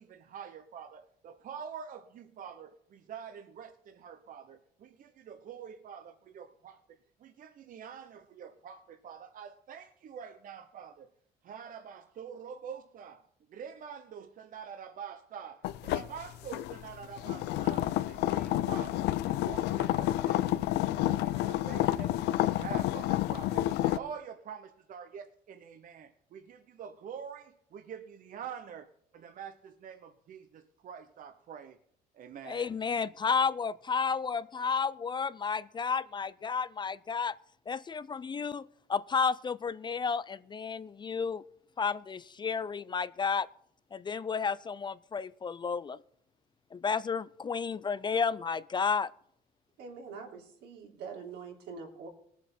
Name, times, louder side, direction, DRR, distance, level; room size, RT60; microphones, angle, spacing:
voice 1, 0.0-11.1 11.4-31.8 32.1-32.7, right 7 dB, 55° right, 8 dB, 0.9 m, -46 dB
sound 1, 15.6-24.0, left 15 dB, 85° left, 0.6 m, -30 dB
voice 2, 32.4-37.4 37.7-41.4 41.8-43.5 43.9-46.0 46.7-49.1, left 5 dB, 25° left, 17 dB, 0.4 m, -32 dB
voice 3, 49.8-52.1, right 5 dB, 80° right, 1 dB, 3.4 m, -44 dB
18.5 x 7.4 x 5.5 m, 0.67 s
cardioid pair, 110°, 17 cm